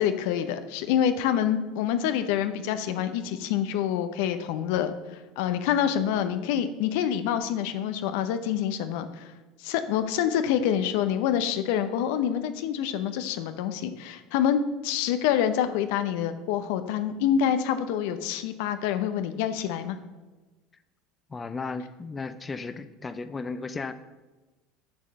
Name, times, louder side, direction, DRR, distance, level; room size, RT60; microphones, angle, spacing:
voice 1, 0.0-9.3 9.6-20.0, left 9 dB, 70° left, 9 dB, 0.7 m, -27 dB
voice 2, 21.3-23.9, left 4 dB, 25° left, 11 dB, 0.5 m, -35 dB
7.2 x 6.6 x 6.2 m, 1.2 s
hypercardioid pair, 80°, 0 cm